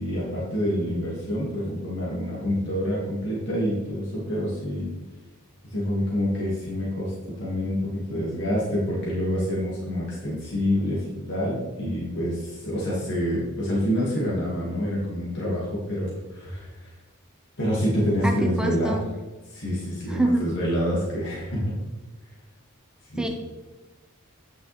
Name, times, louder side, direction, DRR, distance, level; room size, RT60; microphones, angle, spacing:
voice 1, 0.0-4.9 5.6-16.9 17.6-19.1 19.4-21.7 23.1-23.3, equal, 55° left, -6 dB, 2.4 m, -27 dB
voice 2, 18.2-19.0 20.1-20.4 23.2-23.3, right 2 dB, 5° right, 2 dB, 1.0 m, -25 dB
9.6 x 6.8 x 3.5 m, 1.2 s
head